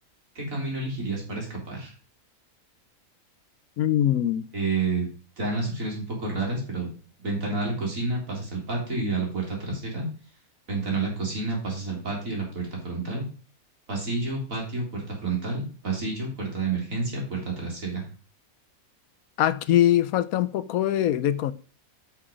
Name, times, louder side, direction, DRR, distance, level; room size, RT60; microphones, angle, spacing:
voice 1, 0.4-1.9 4.5-5.1 5.4-6.9 7.2-10.1 10.7-13.2 13.9-18.1, right 3 dB, 65° right, 3.8 m, -29 dB
voice 2, 3.8-4.5 19.4-21.5, left 12 dB, 80° left, 1.1 m, -22 dB
8.6 x 5.9 x 5.1 m
omnidirectional pair, 1.5 m